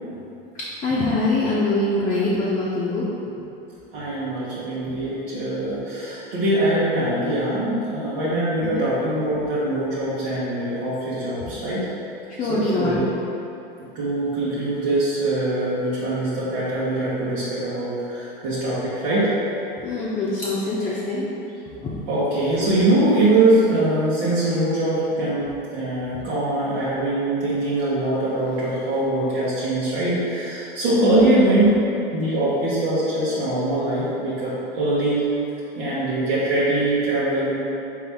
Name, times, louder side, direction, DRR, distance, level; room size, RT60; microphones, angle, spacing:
voice 1, 0.8-3.0 8.6-8.8 12.3-13.0 19.8-21.3 21.8-21.9 31.0-31.3, left 2 dB, 25° left, -7 dB, 0.7 m, -23 dB
voice 2, 3.9-11.9 12.4-13.1 13.9-19.3 22.1-31.7 32.1-35.2 35.8-37.5, right 2 dB, 70° right, -10 dB, 1.2 m, -22 dB
4.0 x 3.3 x 3.4 m, 2.8 s
hypercardioid pair, 100°, 29 cm